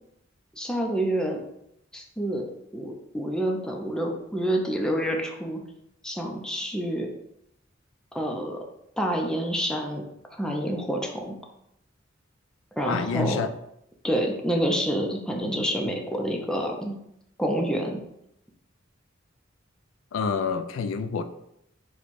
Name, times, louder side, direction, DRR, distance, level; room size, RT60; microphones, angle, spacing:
voice 1, 0.6-1.4 1.9-5.6 6.0-7.1 8.1-8.6 9.0-10.0 10.3-11.4 12.8-13.4 14.0-17.0 17.4-18.0, equal, 5° left, 1 dB, 0.5 m, -28 dB
voice 2, 12.9-13.5 20.1-21.2, left 5 dB, 80° left, 10 dB, 0.3 m, -27 dB
4.2 x 2.3 x 4.5 m, 0.78 s
head